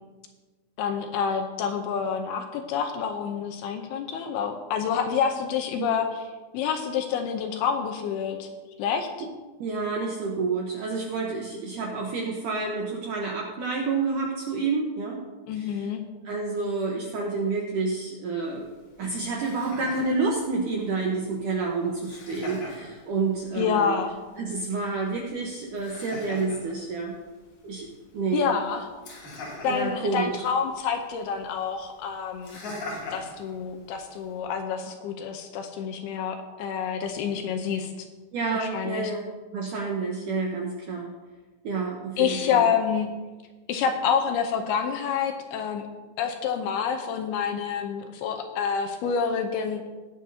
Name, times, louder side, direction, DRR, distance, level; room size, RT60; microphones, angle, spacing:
voice 1, 0.8-6.3 6.5-8.5 8.8-9.1 15.5-16.0 23.5-24.2 28.3-28.9 29.6-32.6 33.1-38.1 38.5-39.1 42.2-43.1 43.7-45.9 46.2-49.9, left 7 dB, 80° left, 5 dB, 2.5 m, -28 dB
voice 2, 9.6-15.2 15.6-15.8 16.3-18.7 19.0-24.0 24.4-27.2 27.6-27.9 28.1-28.5 29.6-30.4 38.3-39.2 39.5-41.1 41.6-42.6, right 4 dB, 75° right, -1 dB, 1.9 m, -29 dB
Laughter, 18.4-34.4, left 2 dB, 60° left, 4.4 m, -44 dB
19.5 x 7.8 x 2.7 m, 1.3 s
omnidirectional pair, 4.9 m